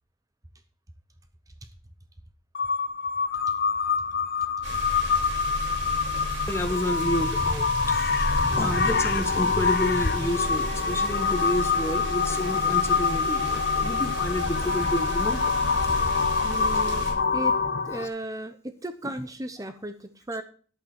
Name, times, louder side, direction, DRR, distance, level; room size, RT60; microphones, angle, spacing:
Crow, 2.5-18.0, left 5 dB, 55° left, 0.9 m, -26 dB
sound 1, 4.6-17.1, right 1 dB, 75° right, 5.2 m, -33 dB
voice 1, 6.5-8.1 8.5-15.5 16.2-16.5 18.0-18.1 19.0-19.3, left 1 dB, 15° left, 8 dB, 1.1 m, -30 dB
sound 2, 8.5-18.1, left 4 dB, 70° left, 1.2 m, -33 dB
voice 2, 16.4-17.6 17.8-20.4, right 1 dB, 20° right, 9 dB, 0.8 m, -35 dB
11.5 x 8.7 x 4.4 m, 0.42 s
head